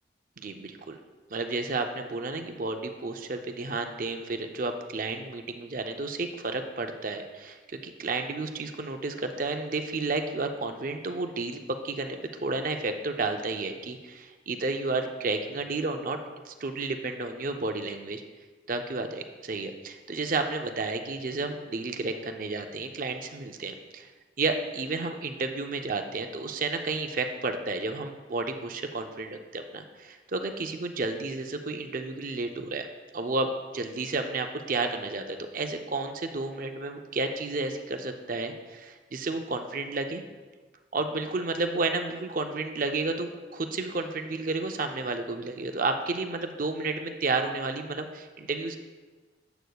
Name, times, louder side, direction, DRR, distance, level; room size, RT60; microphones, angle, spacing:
voice 1, 0.4-1.0 1.3-16.2 16.4-18.2 18.7-24.1 24.4-32.9 33.1-40.2 40.9-48.8, right 3 dB, 45° right, 5 dB, 0.5 m, -31 dB
8.3 x 7.8 x 2.3 m, 1.3 s
head